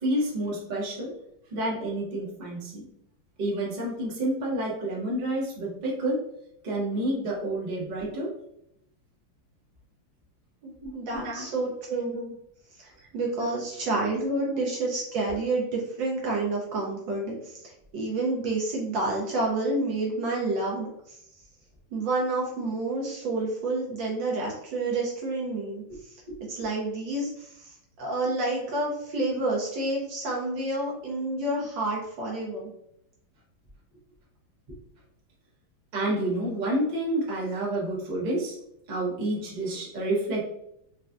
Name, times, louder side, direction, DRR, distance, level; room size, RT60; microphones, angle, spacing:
voice 1, 0.0-1.1 1.5-2.9 3.4-6.2 6.6-8.3 10.8-11.5 12.1-12.3 13.0-13.1 13.4-13.5 14.5-14.6 26.3-26.4 35.9-38.6 38.9-40.4, right 1 dB, 35° right, -6 dB, 0.7 m, -29 dB
voice 2, 10.6-12.2 12.8-17.6 17.9-21.2 21.9-26.2 26.6-32.7, right 2 dB, 70° right, -2 dB, 1.2 m, -29 dB
4.2 x 2.2 x 2.5 m, 0.75 s
omnidirectional pair, 2.4 m